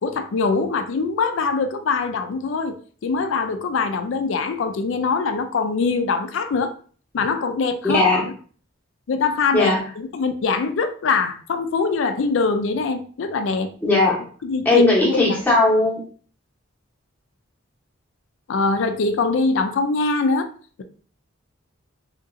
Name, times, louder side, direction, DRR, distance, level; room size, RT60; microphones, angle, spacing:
voice 1, 0.0-2.8 3.0-6.7 7.1-8.3 9.1-13.7 14.4-15.4 18.5-20.5, left 4 dB, 65° left, 0.4 m, -23 dB
voice 2, 7.9-8.3 9.5-9.8 13.8-14.2 14.6-16.0, left 2 dB, 10° left, 0.8 m, -17 dB
2.8 x 2.7 x 2.5 m
head